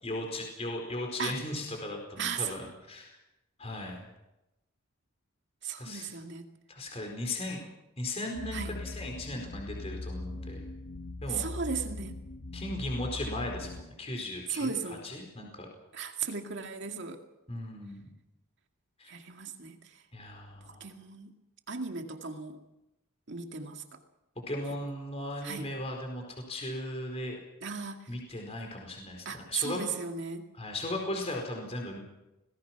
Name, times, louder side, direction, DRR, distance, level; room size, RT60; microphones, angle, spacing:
voice 1, 0.0-3.1 3.6-4.0 5.8-6.1 6.7-7.6 8.0-10.6 11.2-11.5 12.5-15.7 17.5-18.1 19.0-19.1 20.1-20.9 24.5-27.4 28.1-29.8 30.5-32.0, left 1 dB, 30° left, 1 dB, 4.6 m, -37 dB
voice 2, 2.2-2.5 5.6-6.5 8.5-8.7 11.3-12.2 14.5-15.0 15.9-17.2 19.1-19.8 20.8-21.3 21.7-22.6 23.3-24.0 25.4-25.7 27.6-28.1 29.3-30.5, right 6 dB, 55° right, 4 dB, 2.3 m, -36 dB
sound 1, 8.4-13.8, left 2 dB, 75° left, 1.5 m, -40 dB
26.5 x 19.0 x 6.0 m, 0.93 s
head